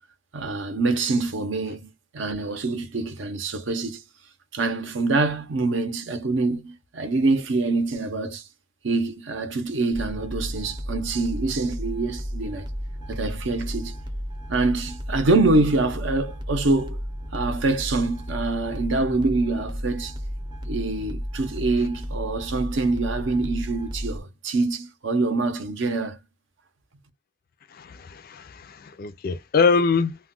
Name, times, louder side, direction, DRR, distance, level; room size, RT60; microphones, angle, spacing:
voice 1, 0.3-4.0 4.5-8.4 8.8-12.7 13.1-13.9 14.5-17.0 17.3-20.2 20.6-26.2, right 3 dB, 60° right, 0.6 m, -25 dB
sound 1, 9.9-24.2, equal, 20° right, 0.6 m, -33 dB
voice 2, 27.7-30.2, left 5 dB, 45° left, 0.4 m, -24 dB
2.3 x 2.2 x 3.6 m
head